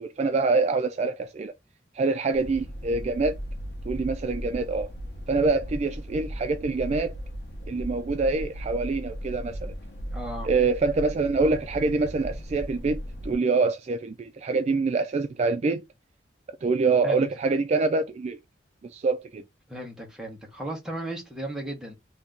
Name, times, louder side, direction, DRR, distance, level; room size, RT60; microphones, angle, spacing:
voice 1, 0.0-1.5 1.9-3.3 3.9-4.9 5.3-7.1 7.7-9.7 10.4-15.8 16.6-18.4 18.8-19.4, right 3 dB, 40° right, 0.3 m, -25 dB
sound 1, 2.3-13.4, equal, 65° left, 0.8 m, -37 dB
voice 2, 10.1-10.5 17.0-17.3 19.7-21.9, right 1 dB, 5° right, 1.1 m, -35 dB
2.8 x 2.6 x 3.5 m
head